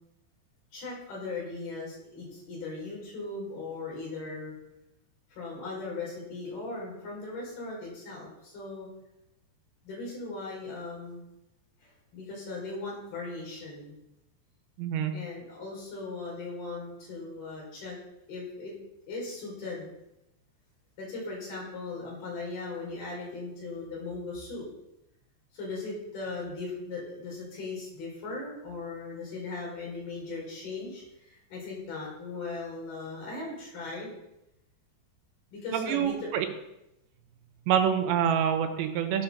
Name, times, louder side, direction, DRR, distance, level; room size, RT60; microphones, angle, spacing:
voice 1, 0.7-4.6 5.3-8.9 9.8-11.2 11.8-14.0 15.1-18.0 18.3-18.7 19.1-19.9 21.0-24.7 25.5-34.1 35.5-36.3, left 3 dB, 60° left, -3 dB, 6.3 m, -38 dB
voice 2, 14.8-15.1 35.7-36.5 37.7-39.2, right 8 dB, 85° right, 6 dB, 3.3 m, -26 dB
14.5 x 6.1 x 6.7 m, 0.88 s
omnidirectional pair, 5.1 m